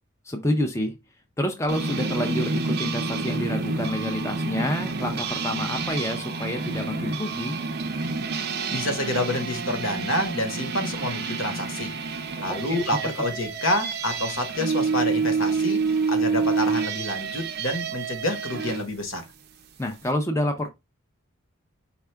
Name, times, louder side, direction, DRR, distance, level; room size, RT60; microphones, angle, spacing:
voice 1, 0.2-1.0 1.4-7.5 12.5-13.1 19.8-20.7, left 1 dB, 15° left, 0.5 m, -28 dB
sound 1, 1.7-18.8, right 4 dB, 50° right, 0.5 m, -28 dB
voice 2, 8.7-19.2, left 1 dB, 75° left, 1.1 m, -28 dB
4.5 x 2.3 x 3.3 m
head